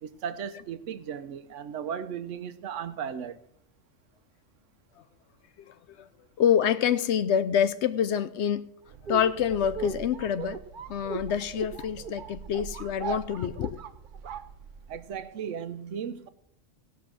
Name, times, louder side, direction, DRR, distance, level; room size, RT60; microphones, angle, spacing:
voice 1, 0.0-3.4 14.9-16.3, right 8 dB, 80° right, 1.0 m, -36 dB
voice 2, 5.6-6.1 6.4-8.7 9.1-10.6 10.9-13.8, left 8 dB, 65° left, 0.8 m, -26 dB
sound 1, 8.9-15.1, right 6 dB, 50° right, 0.7 m, -38 dB
17.0 x 5.9 x 6.0 m
omnidirectional pair, 1.3 m